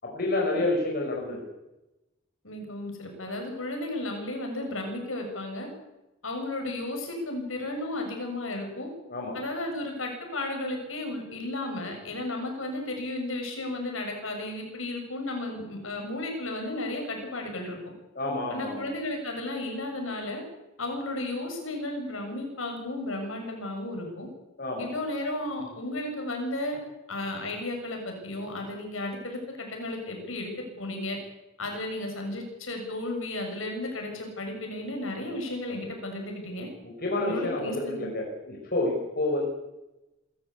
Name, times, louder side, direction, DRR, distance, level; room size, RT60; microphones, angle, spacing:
voice 1, 0.0-1.4 9.1-9.4 18.2-18.9 24.6-24.9 36.8-39.4, left 2 dB, 50° left, -1 dB, 5.6 m, -29 dB
voice 2, 2.4-5.7 6.2-8.9 9.3-17.8 18.5-20.4 20.8-24.3 24.8-26.8 27.1-31.2 31.6-36.7 37.2-38.1, left 1 dB, 75° left, 2 dB, 7.4 m, -34 dB
26.0 x 14.5 x 8.5 m, 0.98 s
head